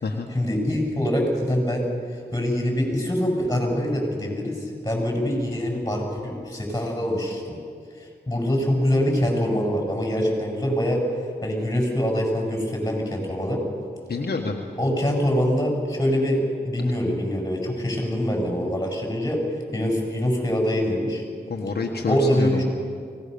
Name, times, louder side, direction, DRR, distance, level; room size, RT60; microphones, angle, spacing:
voice 1, 0.3-1.9 2.3-7.6 8.0-11.0 11.4-13.6 14.8-19.4 19.7-21.2 22.1-22.6, equal, 20° left, 0 dB, 7.8 m, -24 dB
voice 2, 14.1-14.6 21.5-22.6, left 3 dB, 70° left, 1 dB, 1.6 m, -27 dB
24.0 x 19.0 x 7.0 m, 2.2 s
cardioid pair, 60°, 17 cm